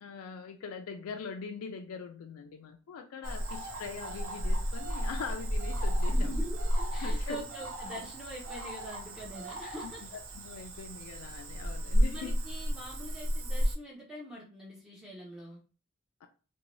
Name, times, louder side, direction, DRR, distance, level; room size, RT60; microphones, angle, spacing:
voice 1, 0.0-6.4 7.0-7.4 9.8-12.4 16.2-16.3, left 5 dB, 75° left, 4 dB, 0.3 m, -42 dB
Cricket / Frog, 3.2-13.8, equal, 60° right, 0.5 m, -32 dB
voice 2, 6.0-10.0 12.1-15.6, equal, 5° right, -3 dB, 0.5 m, -44 dB
2.6 x 2.2 x 2.9 m, 0.36 s
head